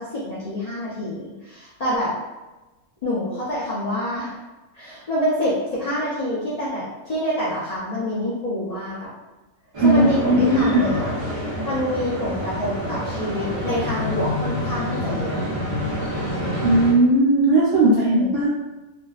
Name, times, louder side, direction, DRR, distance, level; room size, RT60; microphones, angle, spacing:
voice 1, 0.0-2.1 3.0-4.3 4.7-9.1 9.8-11.1 11.4-15.5 18.1-18.4, equal, 80° left, -9 dB, 0.3 m, -26 dB
sound 1, 9.7-16.9, left 1 dB, 40° right, 0.4 m, -27 dB
voice 2, 9.8-10.8 16.6-18.5, right 2 dB, 70° right, -9 dB, 0.9 m, -17 dB
2.5 x 2.3 x 2.3 m, 1.1 s
omnidirectional pair, 1.4 m